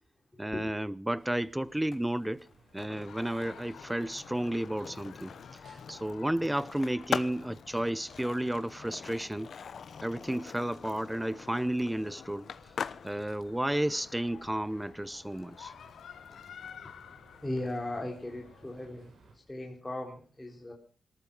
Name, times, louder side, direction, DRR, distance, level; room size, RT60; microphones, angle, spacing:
voice 1, 0.4-2.5 2.7-9.5 10.0-12.5 13.0-15.7, right 1 dB, 10° right, 0.7 m, -32 dB
sound 1, 1.1-19.4, right 3 dB, 65° right, 7.1 m, -61 dB
Skateboard, 1.8-17.6, left 6 dB, 60° left, 0.9 m, -44 dB
sound 2, 3.1-18.9, left 8 dB, 85° left, 1.5 m, -53 dB
voice 2, 17.4-19.1 19.5-20.7, left 1 dB, 15° left, 3.9 m, -37 dB
19.0 x 13.5 x 5.5 m
cardioid pair, 100°, 0 cm